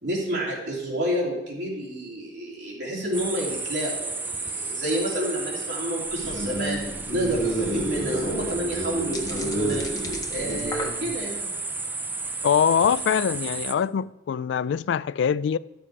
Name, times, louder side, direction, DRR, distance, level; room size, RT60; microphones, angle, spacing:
voice 1, 0.0-6.8 7.1-9.8 10.3-11.5, equal, 70° right, 3.4 m, -29 dB
sound 1, 3.1-13.7, right 3 dB, 10° right, 0.4 m, -33 dB
sound 2, 6.1-11.2, right 1 dB, 90° right, 4.2 m, -30 dB
sound 3, 7.3-7.4 7.6-7.7 8.2-11.4 12.0-12.3, left 3 dB, 20° left, 1.3 m, -38 dB
voice 2, 12.4-15.6, left 7 dB, 85° left, 0.3 m, -23 dB
13.0 x 6.9 x 4.9 m
head